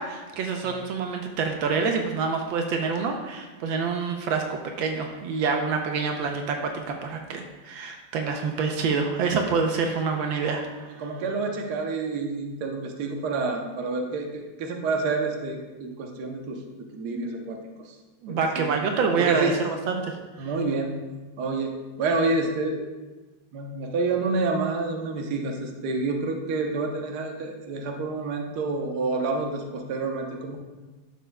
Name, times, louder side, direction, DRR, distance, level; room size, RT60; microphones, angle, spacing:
voice 1, 0.0-10.6 18.2-20.5, right 5 dB, 80° right, 3 dB, 1.4 m, -27 dB
voice 2, 11.0-16.6 16.9-18.0 18.3-18.8 19.2-19.6 20.4-21.0 21.4-22.8 23.5-30.6, right 3 dB, 60° right, 3 dB, 1.3 m, -28 dB
11.0 x 6.8 x 2.2 m, 1.2 s
omnidirectional pair, 2.2 m